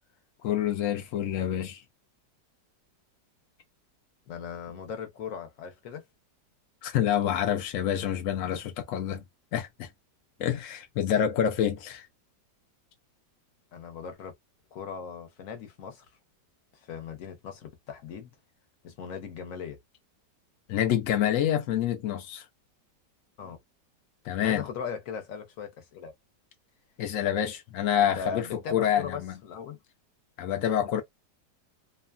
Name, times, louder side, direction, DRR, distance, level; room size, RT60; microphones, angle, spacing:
voice 1, 0.4-1.8 6.8-9.2 9.5-9.9 10.4-12.1 20.7-22.5 24.2-24.6 27.0-29.3 30.4-31.0, left 10 dB, 75° left, 0.7 m, -27 dB
voice 2, 4.3-6.1 13.7-14.3 14.7-16.1 16.9-18.3 18.8-19.8 23.4-23.6 24.4-26.1 28.0-29.8, left 6 dB, 60° left, 1.0 m, -39 dB
2.9 x 2.3 x 2.3 m
omnidirectional pair, 1.9 m